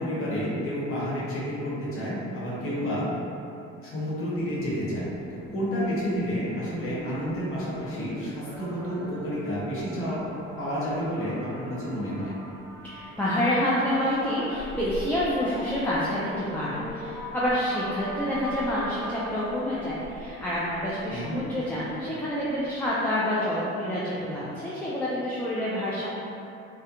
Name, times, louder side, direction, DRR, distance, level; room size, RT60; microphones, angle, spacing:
voice 1, 0.0-3.1 3.8-10.2 10.6-12.3 21.1-21.4, equal, 50° left, -7 dB, 1.0 m, -30 dB
sound 1, 4.3-22.9, equal, 45° right, 0.9 m, -42 dB
voice 2, 12.8-26.1, left 1 dB, 5° left, -9 dB, 0.3 m, -28 dB
2.3 x 2.1 x 2.8 m, 2.8 s
supercardioid pair, 85°, 29 cm